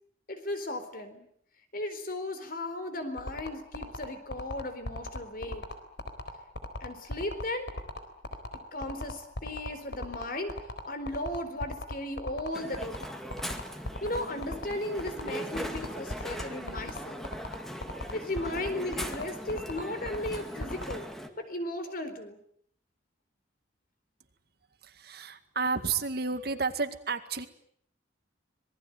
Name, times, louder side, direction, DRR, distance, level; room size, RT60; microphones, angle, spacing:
voice 1, 0.3-1.3 1.7-5.6 6.8-7.7 8.7-10.5 10.8-13.0 14.0-17.3 18.1-21.1 21.4-22.4, left 1 dB, 50° left, 9 dB, 4.2 m, -36 dB
sound 1, 3.2-20.9, left 1 dB, 70° left, 4.1 m, -37 dB
Crowd, 12.5-21.3, equal, ahead, 2.2 m, -40 dB
voice 2, 24.8-27.5, right 4 dB, 55° right, 9 dB, 2.0 m, -31 dB
26.0 x 20.5 x 9.2 m, 0.66 s
head